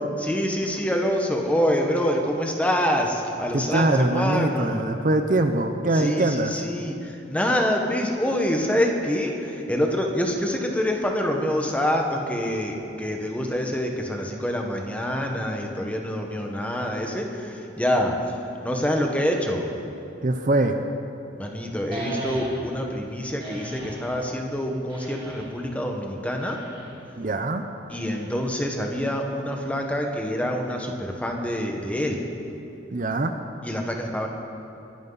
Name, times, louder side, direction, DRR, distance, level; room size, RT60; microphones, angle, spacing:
voice 1, 0.2-4.8 5.9-19.7 21.4-26.6 27.9-32.2 33.6-34.3, equal, 10° left, 2 dB, 1.3 m, -26 dB
voice 2, 3.5-6.5 20.2-20.8 27.2-27.6 32.9-33.4, right 2 dB, 45° right, 7 dB, 0.7 m, -23 dB
sound 1, 21.9-22.8 23.4-24.1 24.9-25.6 26.4-27.0 27.9-28.6, right 2 dB, 25° right, 2.6 m, -36 dB
23.0 x 11.5 x 4.1 m, 2.9 s
head